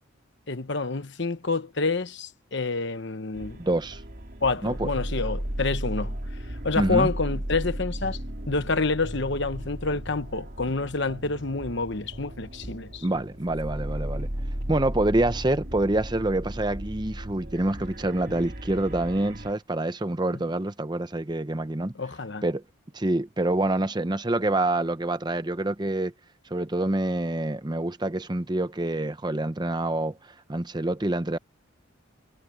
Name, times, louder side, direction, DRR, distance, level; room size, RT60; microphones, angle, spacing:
voice 1, 0.5-3.6 4.4-6.2 6.6-8.2 8.5-13.0 21.9-22.4, left 3 dB, 55° left, 1.1 m, -28 dB
sound 1, 3.3-19.5, equal, 45° right, 2.9 m, -35 dB
voice 2, 3.6-4.0 4.6-4.9 6.8-7.1 13.0-14.3 14.7-21.9 22.4-22.6 22.9-26.1 26.5-31.4, right 1 dB, 20° right, 0.7 m, -26 dB
head